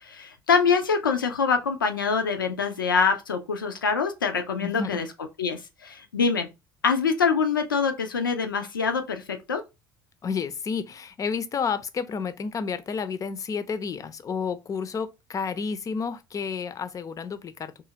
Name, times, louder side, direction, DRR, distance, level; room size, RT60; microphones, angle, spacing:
voice 1, 0.0-5.1 5.4-6.5 6.8-9.6, left 5 dB, 90° left, 0.4 m, -25 dB
voice 2, 4.6-5.0 10.2-17.8, left 5 dB, 30° left, 0.5 m, -31 dB
2.6 x 2.4 x 2.8 m
figure-of-eight pair, 60°, 11 cm